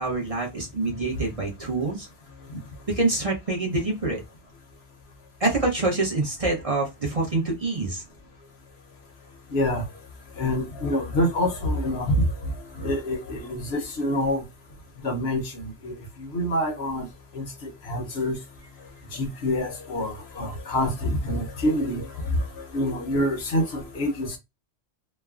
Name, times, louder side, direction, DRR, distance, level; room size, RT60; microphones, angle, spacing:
voice 1, 0.0-2.1 2.9-4.2 5.4-8.0, right 2 dB, 35° right, 0.8 m, -26 dB
voice 2, 9.5-9.8 10.4-12.3 12.8-14.4 15.0-17.1 17.3-18.4 19.1-22.4 22.7-24.4, left 1 dB, 65° left, 1.0 m, -26 dB
3.2 x 2.1 x 2.3 m
omnidirectional pair, 1.2 m